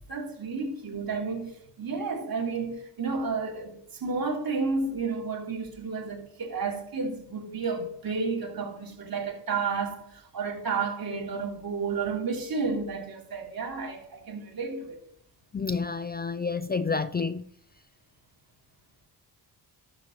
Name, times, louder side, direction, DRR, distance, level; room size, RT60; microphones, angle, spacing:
voice 1, 0.1-15.0, right 4 dB, 60° right, 3.4 m, -31 dB
voice 2, 15.5-17.4, left 4 dB, 25° left, 0.5 m, -29 dB
12.5 x 7.6 x 3.2 m
cardioid pair, 80°, 41 cm